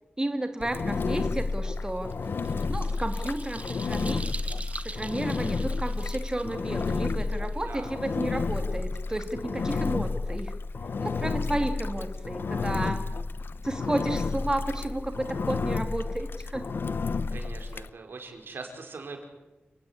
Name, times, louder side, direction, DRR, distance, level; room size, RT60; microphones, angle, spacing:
voice 1, 0.2-2.1 2.7-4.3 4.8-10.5 11.0-13.1 13.6-16.7, right 1 dB, 20° right, 6 dB, 2.1 m, -32 dB
Engine, 0.6-17.9, left 4 dB, 70° left, 0.8 m, -31 dB
sound 1, 2.1-7.9, right 3 dB, 35° right, 1.8 m, -43 dB
voice 2, 7.5-7.9 17.3-19.3, right 4 dB, 75° right, 4 dB, 5.0 m, -42 dB
29.5 x 17.5 x 9.8 m, 1.1 s
wide cardioid pair, 100°, 4 cm